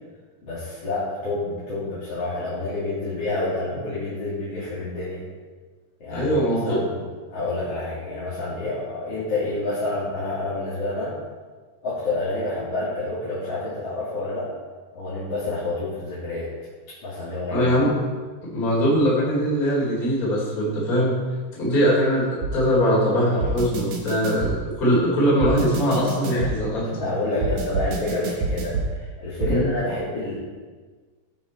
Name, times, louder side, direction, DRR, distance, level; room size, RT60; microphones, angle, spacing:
voice 1, 0.4-5.3 6.0-6.3 6.6-11.2 11.8-14.5 14.9-16.5 16.9-17.8 26.8-30.4, left 2 dB, 50° left, -11 dB, 3.7 m, -28 dB
voice 2, 6.1-6.8 17.5-17.9 18.4-21.2 21.5-26.9 29.5-29.7, equal, 25° left, -5 dB, 3.8 m, -21 dB
sound 1, 22.4-22.5 23.4-24.5 25.4-26.5 27.4-28.9 29.4-29.5, right 3 dB, 85° right, 3.4 m, -26 dB
16.0 x 8.3 x 4.4 m, 1.5 s
omnidirectional pair, 3.7 m